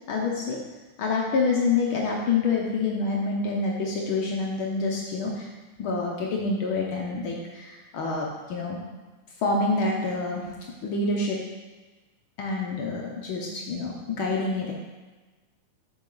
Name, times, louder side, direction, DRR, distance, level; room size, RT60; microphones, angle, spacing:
voice 1, 0.1-0.6 1.0-5.5 5.8-8.8 9.4-11.4 12.4-14.7, left 3 dB, 70° left, -2 dB, 1.2 m, -27 dB
7.3 x 6.2 x 3.9 m, 1.2 s
omnidirectional pair, 3.4 m